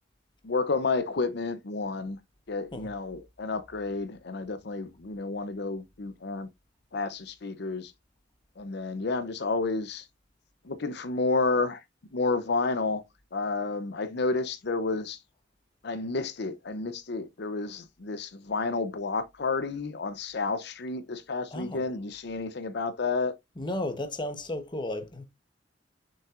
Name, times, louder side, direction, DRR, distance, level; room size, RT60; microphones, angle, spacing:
voice 1, 0.4-2.2 2.5-6.5 6.9-7.9 8.6-10.1 10.6-11.8 12.1-13.0 13.3-15.2 15.8-23.3, left 3 dB, 65° left, 0.7 m, -30 dB
voice 2, 21.5-21.8 23.6-25.3, left 1 dB, 25° left, 1.0 m, -34 dB
6.9 x 5.5 x 2.5 m
head